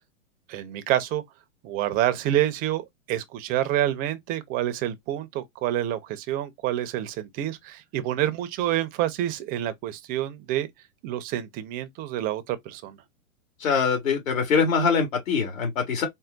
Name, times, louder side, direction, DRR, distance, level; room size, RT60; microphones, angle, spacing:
voice 1, 0.5-1.2 1.6-10.7 11.0-13.0, right 12 dB, 20° right, 0.5 m, -28 dB
voice 2, 13.6-16.1, left 5 dB, 70° left, 2.0 m, -23 dB
4.4 x 2.1 x 3.9 m
hypercardioid pair, 125°, 40 cm